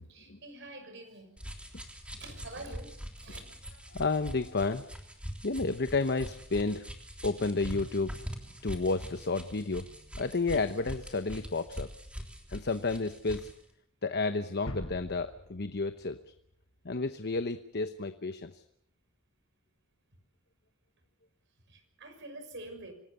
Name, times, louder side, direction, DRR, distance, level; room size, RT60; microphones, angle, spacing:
voice 1, 0.1-1.4 2.2-2.9 3.2-3.4 21.7-22.9, right 2 dB, 60° right, 7 dB, 6.2 m, -46 dB
sound 1, 1.4-13.6, equal, 5° right, 3.4 m, -43 dB
voice 2, 3.9-4.8 5.4-6.8 7.2-8.2 8.6-9.9 10.2-11.9 12.5-13.5 14.0-16.2 16.8-18.6, left 3 dB, 55° left, 10 dB, 1.0 m, -31 dB
sound 2, 14.7-17.3, left 1 dB, 75° left, 5.9 m, -45 dB
26.0 x 19.5 x 7.0 m, 0.70 s
head